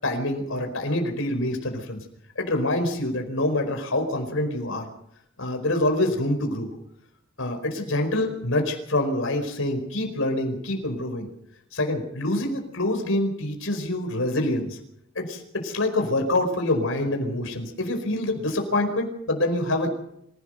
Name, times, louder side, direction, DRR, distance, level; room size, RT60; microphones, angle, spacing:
voice 1, 0.0-2.0 2.3-4.9 5.4-6.7 7.4-11.3 11.7-14.8 15.1-19.9, left 1 dB, 75° left, 4 dB, 4.9 m, -26 dB
25.5 x 16.5 x 6.6 m, 0.75 s
head